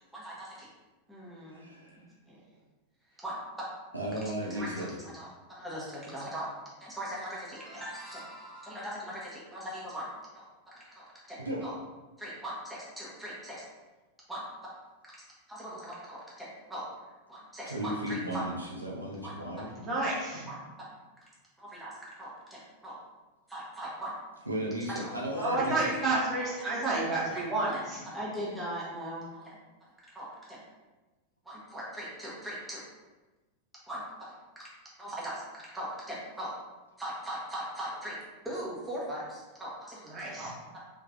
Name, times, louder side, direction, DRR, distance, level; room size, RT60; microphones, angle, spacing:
voice 1, 0.1-0.7 1.1-1.6 2.0-2.4 3.2-3.4 4.5-6.5 6.8-10.1 10.3-10.5 10.7-11.7 12.2-13.6 14.3-14.4 15.5-16.8 17.3-18.4 19.2-19.7 20.5-20.6 21.6-23.0 23.5-24.1 25.0-25.1 26.1-26.2 26.7-26.9 27.3-29.6 30.1-30.6 31.4-32.8 33.9-34.0 34.3-34.7 35.0-36.5 37.0-38.2 38.4-40.8, right 1 dB, 5° right, -7 dB, 1.3 m, -40 dB
voice 2, 1.5-2.0 3.9-4.9 11.4-11.6 17.7-19.7 24.5-25.9, right 1 dB, 85° right, -3 dB, 0.7 m, -35 dB
voice 3, 19.7-20.5 25.4-28.0 40.1-40.5, right 2 dB, 25° right, -6 dB, 1.5 m, -30 dB
3.7 x 3.1 x 3.7 m, 1.2 s
figure-of-eight pair, 90°, 0 cm